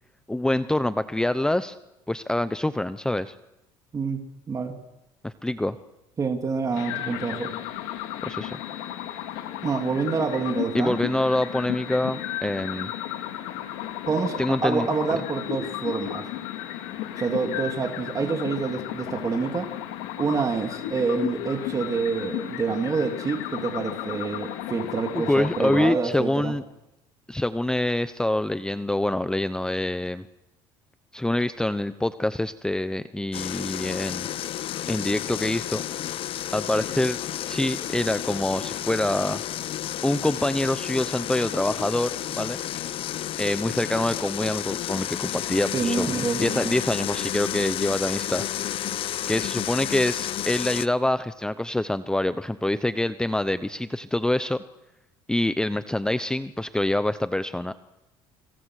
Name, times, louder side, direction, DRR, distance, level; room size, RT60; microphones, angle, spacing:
voice 1, 0.3-1.8 2.1-3.3 5.2-5.8 8.2-8.6 10.7-12.9 14.4-14.9 25.1-26.6 27.3-30.3 31.1-34.3 34.9-35.8 36.5-37.2 37.5-39.4 40.0-42.6 43.4-48.4 49.3-54.6 55.3-57.7, left 1 dB, 5° left, 12 dB, 0.9 m, -25 dB
voice 2, 6.2-7.5 9.6-11.0 14.1-16.3 17.2-19.7 20.2-26.5 45.7-46.8, right 4 dB, 30° right, 4 dB, 3.1 m, -27 dB
sound 1, 6.7-25.9, left 12 dB, 85° left, 2.7 m, -34 dB
sound 2, 33.3-50.9, left 12 dB, 55° left, 0.9 m, -31 dB
29.5 x 26.0 x 6.6 m, 0.93 s
supercardioid pair, 100°, 11 cm